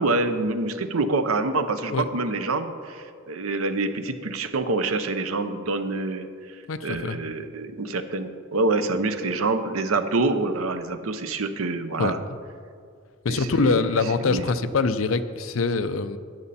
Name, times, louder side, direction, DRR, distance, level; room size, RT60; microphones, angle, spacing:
voice 1, 0.0-6.3 6.8-12.2 13.3-13.9 14.2-14.5, right 3 dB, 85° right, 10 dB, 0.8 m, -26 dB
voice 2, 6.7-7.2 12.0-12.1 13.2-16.2, left 4 dB, 70° left, 10 dB, 0.5 m, -24 dB
13.0 x 9.7 x 4.2 m, 2.1 s
head